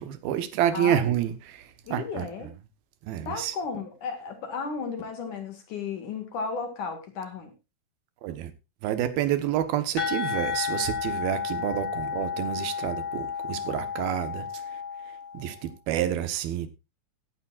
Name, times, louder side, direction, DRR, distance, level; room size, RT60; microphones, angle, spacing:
voice 1, 0.0-1.6 1.9-2.2 3.1-3.5 8.2-8.5 8.8-14.5 15.3-16.7, right 11 dB, 80° right, 3.1 m, -28 dB
voice 2, 0.7-1.2 1.8-2.5 3.3-7.5, left 5 dB, 60° left, 3.3 m, -34 dB
sound 1, 10.0-15.6, left 6 dB, 80° left, 6.4 m, -32 dB
16.5 x 11.0 x 2.5 m
omnidirectional pair, 4.2 m